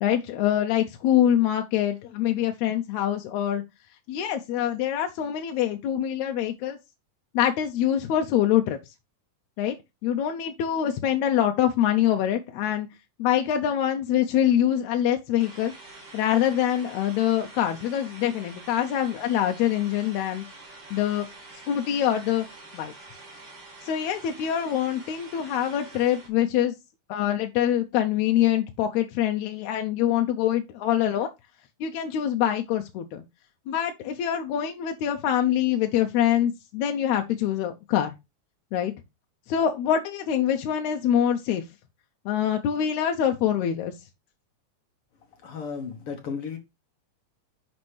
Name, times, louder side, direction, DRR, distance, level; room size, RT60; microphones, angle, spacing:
voice 1, 0.0-3.6 4.1-6.8 7.3-8.8 9.6-9.8 10.0-12.9 13.2-15.7 16.1-20.4 20.9-21.3 21.7-22.5 22.7-22.9 23.9-26.8 27.1-31.3 31.8-33.2 33.7-38.1 38.7-38.9 39.5-41.6 42.3-43.9, left 10 dB, 80° left, 2.0 m, -24 dB
sound 1, 15.4-26.3, right 2 dB, 50° right, 3.3 m, -46 dB
voice 2, 45.4-46.6, left 6 dB, 60° left, 1.6 m, -34 dB
10.5 x 4.3 x 3.2 m
omnidirectional pair, 3.5 m